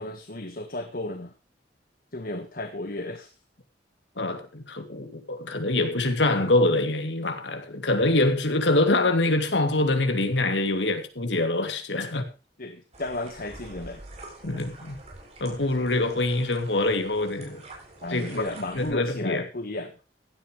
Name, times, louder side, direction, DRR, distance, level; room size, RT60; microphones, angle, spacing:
voice 1, 0.0-1.3 2.1-3.3 12.6-14.0 18.0-19.9, left 2 dB, 55° left, 1.5 m, -33 dB
voice 2, 4.2-12.2 14.4-15.0 15.4-17.6 18.1-18.4 18.7-19.4, left 2 dB, 90° left, 2.8 m, -25 dB
sound 1, 12.9-18.9, right 2 dB, 40° right, 7.2 m, -46 dB
16.5 x 12.5 x 3.3 m
head